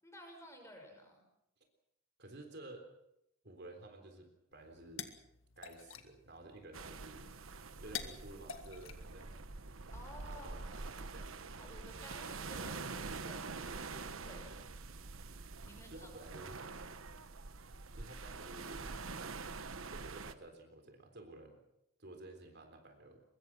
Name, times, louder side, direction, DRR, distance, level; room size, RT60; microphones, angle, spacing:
voice 1, 0.0-1.2 9.9-10.9 11.6-14.8 15.6-16.1, left 1 dB, 15° left, 3 dB, 6.0 m, -54 dB
voice 2, 2.2-2.9 3.4-5.1 5.6-7.3 7.8-9.4 10.3-11.4 15.9-16.6 17.9-18.8 19.9-21.6 22.0-23.2, right 2 dB, 55° right, 5 dB, 3.8 m, -52 dB
sound 1, 4.5-9.8, left 8 dB, 75° left, 2.0 m, -50 dB
sound 2, 6.7-20.3, right 4 dB, 80° right, 1.2 m, -46 dB
24.0 x 22.0 x 6.1 m, 0.82 s
head